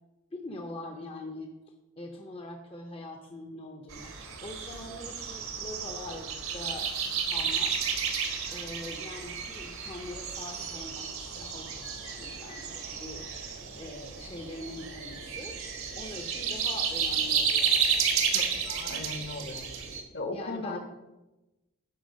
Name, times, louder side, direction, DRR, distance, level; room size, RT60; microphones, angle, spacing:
voice 1, 0.3-1.5 2.0-6.9 7.2-7.9 8.5-13.3 13.7-15.6 15.9-17.8 20.3-20.8, left 1 dB, 25° left, 4 dB, 0.7 m, -43 dB
sound 1, 3.9-20.0, right 6 dB, 75° right, 1.5 m, -32 dB
voice 2, 18.3-19.6 20.1-20.8, left 2 dB, 50° left, 7 dB, 1.0 m, -37 dB
10.5 x 4.5 x 6.3 m, 1.0 s
head